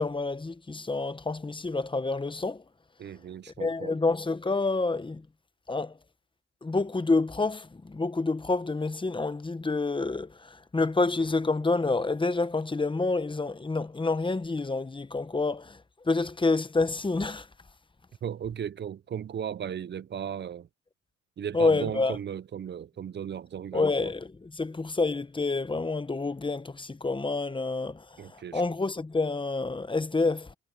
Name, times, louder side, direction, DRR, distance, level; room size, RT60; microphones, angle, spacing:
voice 1, 0.0-2.6 3.6-5.3 5.7-6.0 6.6-17.5 21.5-22.2 23.7-30.5, left 3 dB, 15° left, 1.1 m, -28 dB
voice 2, 3.0-4.0 18.2-20.7 21.4-24.1 28.2-28.6, right 8 dB, 35° right, 0.5 m, -36 dB
cardioid pair, 90°, 30 cm